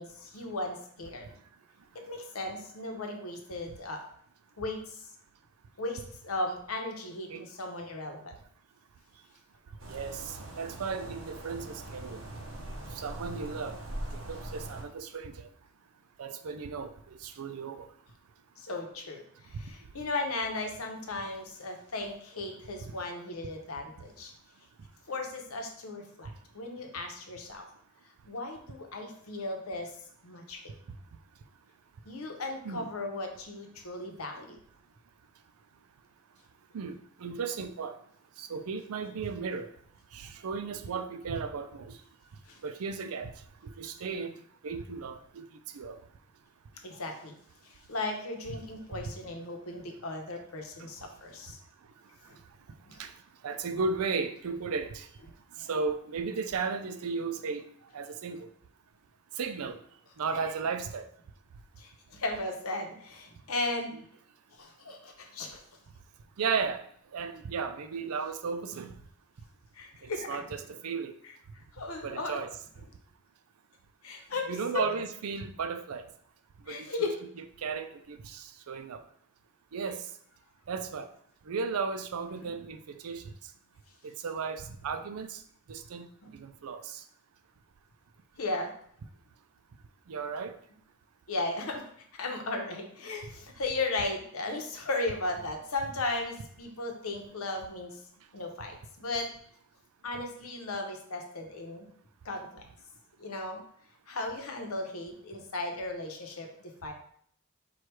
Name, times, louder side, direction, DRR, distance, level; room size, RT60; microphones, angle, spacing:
voice 1, 0.0-1.3 1.9-4.1 4.6-5.1 5.8-8.4 18.6-24.3 25.1-27.7 28.3-29.9 30.2-30.6 32.1-34.6 42.5-42.6 46.8-47.4 47.6-51.6 52.3-52.4 52.9-53.0 61.8-64.0 64.5-65.6 69.7-70.4 71.7-72.4 74.0-74.8 76.7-77.2 82.4-82.5 86.2-86.4 88.4-88.7 91.3-98.0 98.3-99.3 100.0-101.9 102.2-102.6 103.2-103.6 104.1-106.9, left 2 dB, 75° left, 3 dB, 0.8 m, -36 dB
sound 1, 9.8-14.8, right 1 dB, 55° right, 0.8 m, -41 dB
voice 2, 9.9-12.2 13.0-13.8 14.3-15.5 16.2-16.9 17.2-17.9 32.6-32.9 36.7-37.9 38.4-39.7 40.1-41.9 42.6-43.3 43.8-44.3 44.6-45.4 45.7-46.0 53.0-53.1 53.4-55.1 55.7-57.6 57.9-58.5 59.4-59.8 60.2-61.0 66.4-66.8 67.1-68.9 70.3-71.1 72.0-72.5 74.5-76.1 76.7-77.1 77.6-79.0 79.7-80.0 80.7-81.1 81.5-83.2 84.2-85.4 85.7-86.1 86.4-87.0 90.1-90.5, right 5 dB, 85° right, 9 dB, 0.5 m, -35 dB
4.6 x 2.4 x 4.5 m, 0.63 s
head